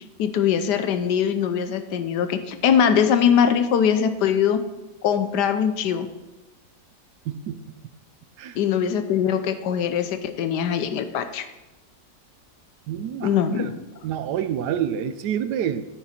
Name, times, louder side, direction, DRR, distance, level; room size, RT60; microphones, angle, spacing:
voice 1, 0.2-4.6 5.0-6.1 8.6-11.4 13.2-13.8, left 8 dB, 85° left, 10 dB, 1.3 m, -22 dB
voice 2, 7.3-7.6 8.4-8.6 12.9-13.3 13.6-13.7 14.0-15.9, right 9 dB, 80° right, 12 dB, 1.2 m, -27 dB
9.6 x 9.1 x 4.3 m, 1.1 s
omnidirectional pair, 1.8 m